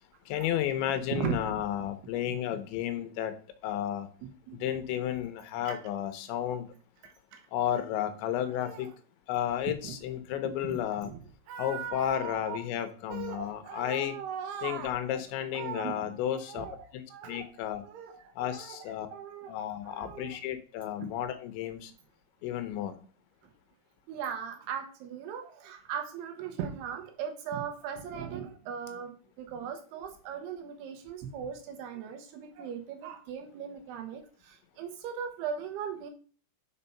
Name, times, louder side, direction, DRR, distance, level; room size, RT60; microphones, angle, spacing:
voice 1, 0.3-3.3 3.6-4.1 4.6-6.7 7.5-8.9 9.3-11.1 11.6-14.1 14.6-16.7 16.9-17.0 17.3-17.8 18.4-19.1 19.5-21.9 22.4-23.0, left 11 dB, 80° left, 10 dB, 3.2 m, -32 dB
voice 2, 1.1-1.6 4.5-4.6 5.7-5.8 7.0-7.4 8.6-8.9 9.7-9.9 10.6-11.2 11.5-12.6 13.1-15.2 15.5-16.1 16.5-16.8 17.1-17.5 17.8-18.8 19.1-19.6 19.8-20.4 21.0-21.1 23.4-23.5 24.1-36.1, right 7 dB, 75° right, 5 dB, 2.7 m, -39 dB
6.7 x 5.3 x 5.6 m, 0.42 s
omnidirectional pair, 5.2 m